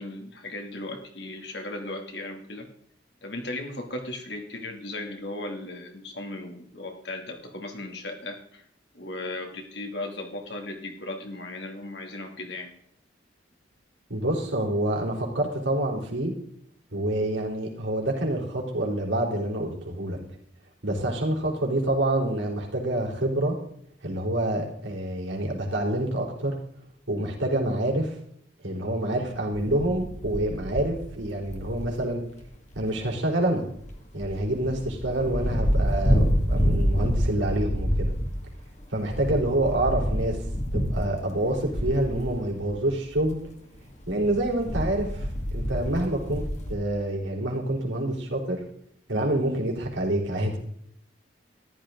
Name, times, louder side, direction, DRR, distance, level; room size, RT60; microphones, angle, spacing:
voice 1, 0.0-2.7 3.2-8.6 8.9-12.7, left 2 dB, 65° left, 2 dB, 2.6 m, -36 dB
voice 2, 14.1-16.3 16.9-20.2 20.8-23.6 24.0-26.6 27.1-28.2 28.6-32.2 32.8-33.6 34.1-38.1 38.9-40.4 40.7-43.4 44.1-46.4 46.7-48.6 49.1-50.6, right 1 dB, 85° right, -1 dB, 3.9 m, -27 dB
sound 1, 29.5-32.1 32.4-32.5 32.7-32.8 33.8-33.9 34.2-43.4 43.7-46.7, equal, 40° left, 2.2 m, -28 dB
14.0 x 12.5 x 3.9 m, 0.69 s
head